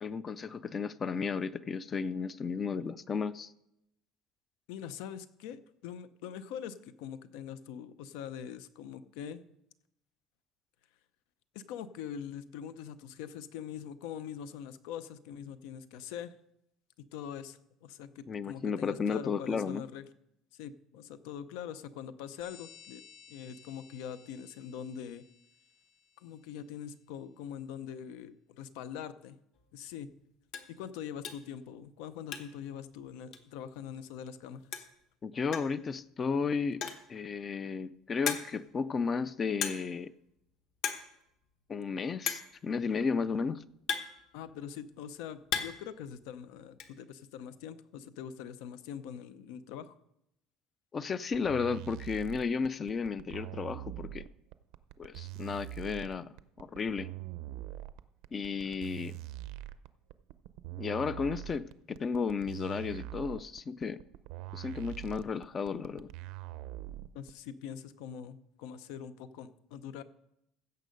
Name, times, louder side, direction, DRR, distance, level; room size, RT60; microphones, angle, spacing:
voice 1, 0.0-3.5 18.3-19.8 35.2-36.8 37.1-40.1 41.7-43.6 50.9-54.2 55.0-56.3 56.6-57.1 58.3-59.2 60.8-64.0 64.5-66.1, left 5 dB, 20° left, 0.3 m, -33 dB
voice 2, 4.7-9.4 11.5-16.3 17.1-20.0 20.5-23.0 23.3-25.2 26.2-29.4 29.7-30.1 30.7-34.9 44.3-49.9 67.1-70.0, left 8 dB, 80° left, 0.7 m, -43 dB
sound 1, 22.4-26.7, left 7 dB, 60° left, 2.1 m, -57 dB
sound 2, 29.6-29.7 30.1-30.2 30.5-30.8 31.2-31.5 31.9-32.7 33.0-33.1 33.3-33.4 34.4-34.5 34.7-35.0 35.5-35.8 36.6-37.1 37.7-37.8 38.3-38.7 39.6-40.0 40.3-40.5 40.8-41.1 41.4-41.5 42.3-42.6 43.4-44.7 45.1-45.9 46.2-46.9, left 7 dB, 45° left, 1.0 m, -36 dB
sound 3, 51.3-67.3, right 16 dB, 70° right, 0.5 m, -43 dB
15.5 x 6.7 x 5.3 m
cardioid pair, 180°, 0 cm